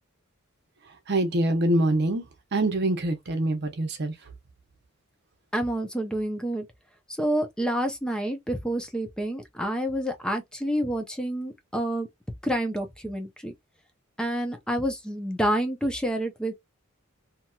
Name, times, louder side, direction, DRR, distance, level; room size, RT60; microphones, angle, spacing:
voice 1, 1.1-2.2 2.5-4.1, right 1 dB, 55° right, 0.8 m, -24 dB
voice 2, 5.5-6.7 7.2-12.1 12.4-13.5 14.2-16.5, right 1 dB, 5° left, 0.5 m, -28 dB
2.8 x 2.8 x 2.2 m
head